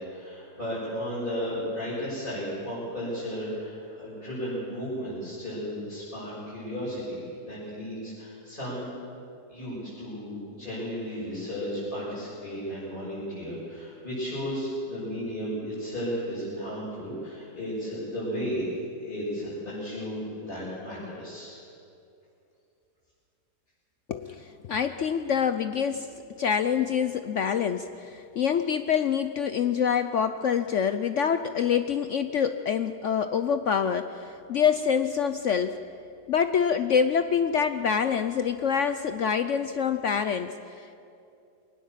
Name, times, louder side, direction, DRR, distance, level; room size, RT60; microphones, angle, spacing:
voice 1, 0.0-8.9 9.5-21.6, equal, 30° left, -11 dB, 7.4 m, -34 dB
voice 2, 24.1-26.1 26.4-35.8 36.3-41.0, left 7 dB, 60° left, 10 dB, 0.8 m, -26 dB
23.0 x 18.5 x 7.4 m, 2.6 s
omnidirectional pair, 1.8 m